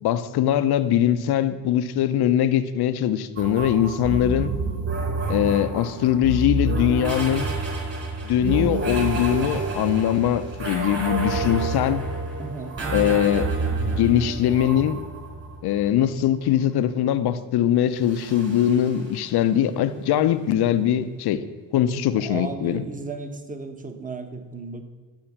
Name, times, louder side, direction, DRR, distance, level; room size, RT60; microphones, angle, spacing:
voice 1, 0.0-4.5 5.3-7.5 8.2-12.0 12.9-13.5 13.9-15.0 15.6-21.4 21.7-22.8, left 10 dB, 80° left, 12 dB, 0.9 m, -22 dB
sound 1, 3.4-15.9 17.9-19.6, right 2 dB, 40° right, 3.9 m, -29 dB
voice 2, 5.2-5.6 12.4-13.1 22.2-24.8, right 3 dB, 20° right, 7 dB, 1.2 m, -35 dB
12.0 x 7.3 x 7.2 m, 1.4 s
cardioid pair, 110°, 38 cm